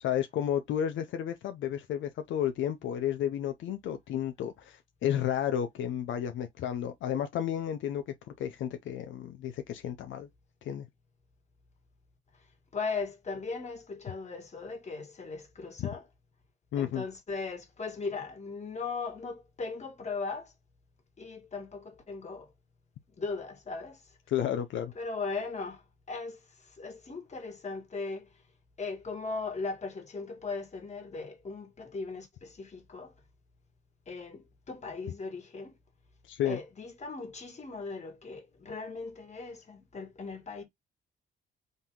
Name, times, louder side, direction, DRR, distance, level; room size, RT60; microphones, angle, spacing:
voice 1, 0.0-8.1 8.4-10.3 10.6-10.9 15.8-15.9 16.7-17.0 24.3-24.9 36.3-36.6, left 10 dB, 75° left, 0.6 m, -32 dB
voice 2, 12.7-16.0 16.8-20.5 21.2-22.5 23.2-24.0 25.0-28.3 28.8-33.1 34.1-35.7 36.5-40.6, left 4 dB, 35° left, 1.8 m, -38 dB
4.0 x 2.9 x 3.6 m
cardioid pair, 90°, 20 cm